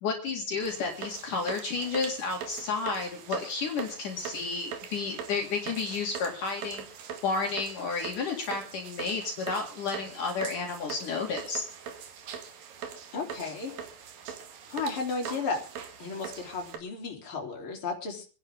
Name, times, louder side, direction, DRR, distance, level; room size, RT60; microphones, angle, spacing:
voice 1, 0.0-6.8 7.2-11.7, left 4 dB, 65° left, 1 dB, 3.6 m, -31 dB
sound 1, 0.6-16.8, right 7 dB, 75° right, 3.6 m, -42 dB
voice 2, 13.1-13.7 14.7-15.6 16.0-18.3, left 4 dB, 35° left, 1 dB, 4.1 m, -34 dB
26.5 x 11.0 x 3.6 m, 0.35 s
omnidirectional pair, 4.1 m